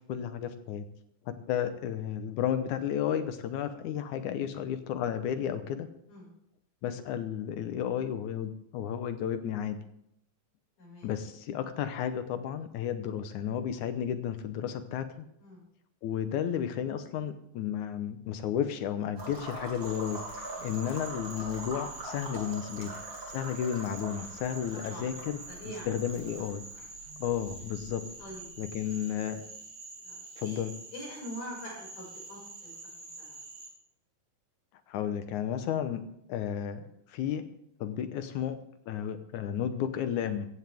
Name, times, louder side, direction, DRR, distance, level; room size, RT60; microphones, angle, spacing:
voice 1, 0.1-0.8 1.3-5.9 6.8-9.8 11.0-15.3 16.0-23.0 23.3-25.4 25.7-26.6 27.2-28.0 28.6-29.4 30.4-30.8 34.9-36.0 36.3-37.4 37.8-38.6 38.9-40.5, left 9 dB, 70° left, 10 dB, 2.1 m, -33 dB
voice 2, 10.8-11.1 15.4-15.7 20.6-20.8 24.7-25.1 25.5-25.9 26.1-26.3 26.7-26.8 28.2-28.4 30.0-30.6 30.9-32.7 33.2-33.4, equal, 55° left, -3 dB, 7.0 m, -44 dB
sound 1, 19.2-28.9, right 2 dB, 35° right, 3.6 m, -44 dB
Frog, 19.8-33.7, right 3 dB, 70° right, 6.2 m, -47 dB
15.5 x 15.5 x 3.6 m, 0.74 s
omnidirectional pair, 4.0 m